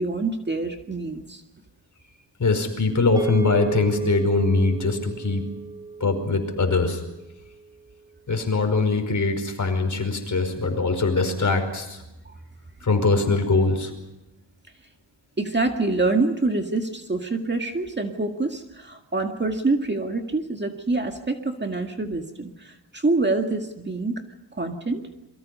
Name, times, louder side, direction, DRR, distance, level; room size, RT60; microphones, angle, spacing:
voice 1, 0.0-1.4 12.3-12.4 15.4-24.2 24.5-25.0, right 3 dB, 25° right, 4 dB, 2.0 m, -26 dB
voice 2, 2.4-5.5 6.0-7.0 8.3-12.0 12.8-13.9, left 3 dB, 40° left, 5 dB, 5.1 m, -22 dB
sound 1, 3.2-7.7, right 3 dB, 10° right, 4.9 m, -33 dB
28.5 x 23.5 x 5.5 m, 0.94 s
wide cardioid pair, 125°, 43 cm